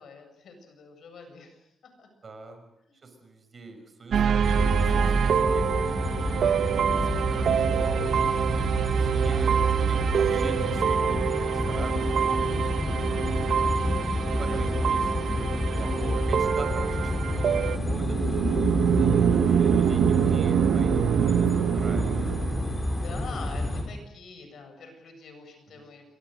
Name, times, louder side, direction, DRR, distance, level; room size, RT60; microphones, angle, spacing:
voice 1, 0.0-2.1 2.8-3.1 12.5-13.6 22.8-26.0, left 4 dB, 70° left, 6 dB, 7.5 m, -46 dB
voice 2, 2.2-2.6 3.0-8.3 8.9-12.5 14.2-22.4 25.8-25.9, right 3 dB, 40° right, 6 dB, 6.0 m, -43 dB
sound 1, 4.1-17.8, right 7 dB, 65° right, 1.3 m, -26 dB
sound 2, 4.4-23.8, left 1 dB, 15° left, 6.9 m, -29 dB
sound 3, 17.8-22.7, right 9 dB, 90° right, 1.2 m, -23 dB
28.5 x 24.5 x 6.7 m, 0.79 s
cardioid pair, 120°, 0 cm